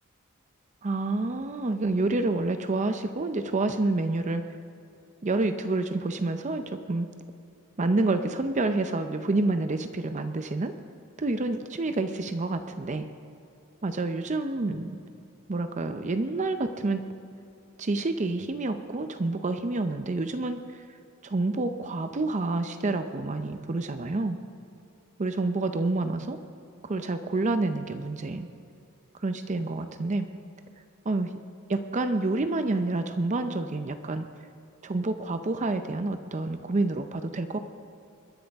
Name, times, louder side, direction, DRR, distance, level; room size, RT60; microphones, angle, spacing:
voice 1, 0.8-4.4 5.2-7.1 7.8-10.7 11.2-13.1 13.8-15.0 15.5-17.0 17.8-20.8 21.2-24.4 25.2-26.4 26.8-28.5 29.2-30.3 31.1-31.3 31.7-34.3 34.8-37.6, right 2 dB, 35° right, 8 dB, 0.6 m, -28 dB
22.5 x 10.5 x 3.5 m, 2.5 s
head